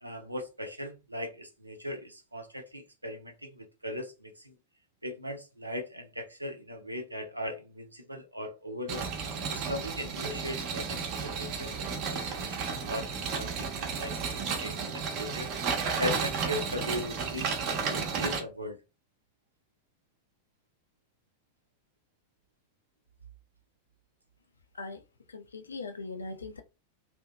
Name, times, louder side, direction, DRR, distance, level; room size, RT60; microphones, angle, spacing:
voice 1, 0.0-4.5 5.0-9.0 9.5-15.5 16.0-17.5 17.9-18.8, left 1 dB, 85° right, 0.7 m, -38 dB
sound 1, 8.9-18.4, right 5 dB, 40° right, 0.8 m, -33 dB
voice 2, 25.3-26.6, left 3 dB, 75° left, 0.5 m, -40 dB
2.7 x 2.5 x 2.3 m
figure-of-eight pair, 90°, 0 cm